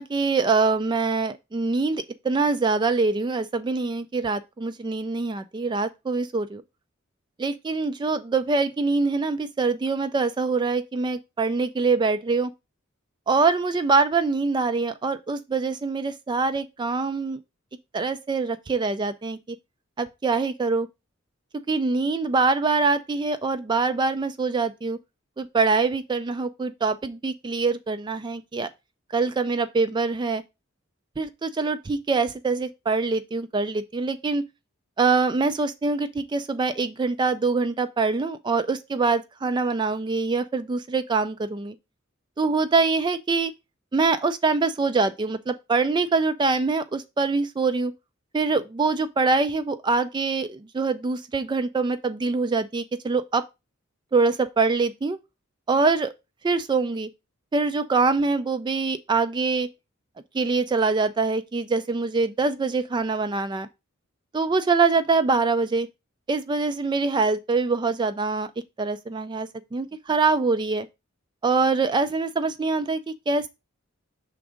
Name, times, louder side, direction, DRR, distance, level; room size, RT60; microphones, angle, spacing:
voice 1, 0.0-6.6 7.4-12.5 13.3-17.4 17.9-19.4 20.0-20.9 21.7-25.0 25.4-28.7 29.1-30.4 31.2-34.5 35.0-41.7 42.4-43.5 43.9-47.9 48.3-53.4 54.1-55.2 55.7-56.1 56.4-57.1 57.5-59.7 60.3-63.7 64.3-65.9 66.3-68.5 68.8-70.9 71.4-73.5, right 4 dB, 20° right, 0.3 m, -24 dB
5.9 x 3.6 x 4.9 m
head